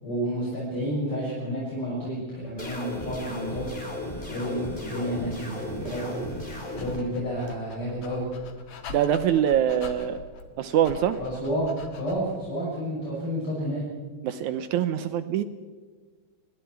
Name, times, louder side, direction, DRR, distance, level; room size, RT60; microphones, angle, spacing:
voice 1, 0.0-3.7 4.3-6.2 6.7-8.2 11.2-13.8, equal, 35° left, -6 dB, 7.7 m, -30 dB
sound 1, 2.6-7.0, left 1 dB, 15° left, 3.8 m, -35 dB
Dog, 6.3-12.4, left 4 dB, 55° left, 2.9 m, -44 dB
voice 2, 8.9-10.2 10.6-11.2 14.2-15.4, right 10 dB, 80° right, 11 dB, 1.7 m, -24 dB
29.5 x 21.0 x 4.7 m, 1.5 s
omnidirectional pair, 4.3 m